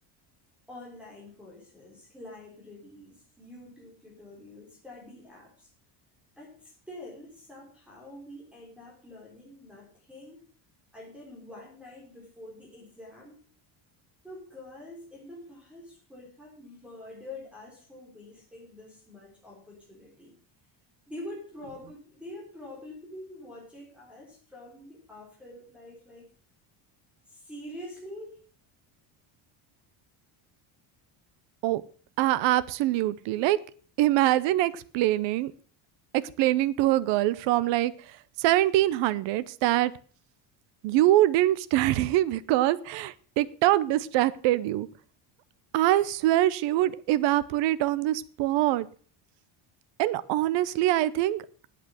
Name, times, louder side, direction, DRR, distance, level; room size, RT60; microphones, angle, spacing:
voice 1, 0.7-5.7 6.4-10.4 10.9-13.4 14.2-20.3 21.1-26.3 27.3-28.4, left 1 dB, ahead, -3 dB, 3.7 m, -46 dB
voice 2, 32.2-33.6 34.0-35.5 36.1-39.9 40.8-44.9 45.7-48.9 50.0-51.4, right 15 dB, 60° right, 16 dB, 0.8 m, -24 dB
8.7 x 8.4 x 7.4 m, 0.43 s
cardioid pair, 175°, 50 cm